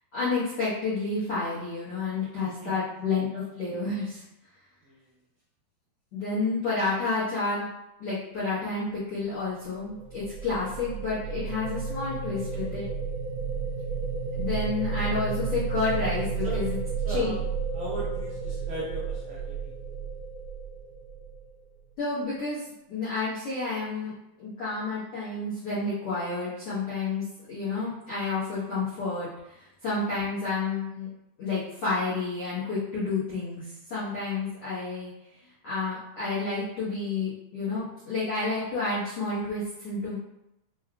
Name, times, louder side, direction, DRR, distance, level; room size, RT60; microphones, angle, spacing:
voice 1, 0.1-4.2 6.1-7.7 8.0-12.9 14.3-16.8 17.1-17.3 22.0-24.1 24.4-27.2 27.5-31.1 31.4-35.1 35.6-40.1, left 3 dB, 80° left, -12 dB, 1.3 m, -30 dB
voice 2, 2.4-2.7 4.9-5.0 16.4-16.7 17.0-17.3 17.7-19.5, right 2 dB, 85° right, -7 dB, 1.7 m, -37 dB
sound 1, 9.5-21.7, right 5 dB, 70° right, 1.1 m, -32 dB
6.4 x 2.2 x 2.4 m, 0.85 s
omnidirectional pair, 4.7 m